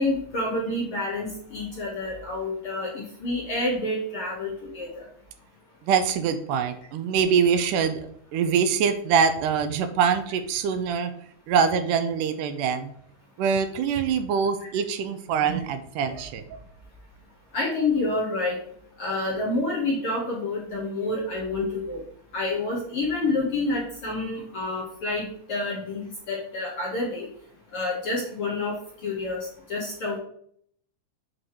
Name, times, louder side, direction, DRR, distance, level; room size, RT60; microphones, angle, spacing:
voice 1, 0.0-5.0 14.6-14.8 17.5-18.6 19.0-22.0 22.3-26.0 26.3-27.3 27.7-28.7 29.0-30.2, left 2 dB, 60° left, -3 dB, 1.5 m, -28 dB
voice 2, 5.8-8.0 8.3-11.1 11.5-12.9 13.4-16.6, right 6 dB, 85° right, 8 dB, 2.1 m, -24 dB
7.5 x 3.0 x 4.7 m, 0.64 s
omnidirectional pair, 3.8 m